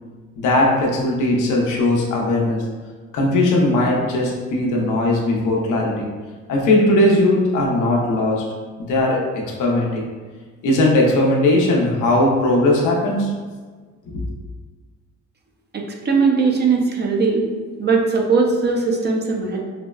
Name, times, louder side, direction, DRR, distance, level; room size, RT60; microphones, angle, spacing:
voice 1, 0.4-2.6 3.1-6.1 6.5-8.4 8.8-10.0 10.6-13.3 14.1-14.2, left 1 dB, 85° left, -2 dB, 0.7 m, -18 dB
voice 2, 15.7-17.5 17.8-19.6, right 4 dB, 35° right, 1 dB, 0.5 m, -19 dB
4.1 x 2.1 x 2.3 m, 1.4 s
cardioid pair, 90°, 30 cm